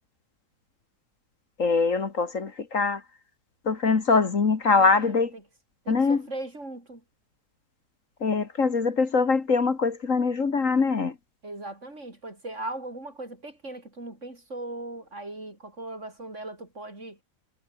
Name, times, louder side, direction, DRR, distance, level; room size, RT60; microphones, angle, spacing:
voice 1, 1.6-3.0 3.7-5.3 5.9-6.2 8.2-11.1, left 4 dB, 55° left, 2.2 m, -23 dB
voice 2, 4.8-5.4 5.8-7.0 11.4-17.2, right 2 dB, 45° right, 5.6 m, -39 dB
omnidirectional pair, 1.7 m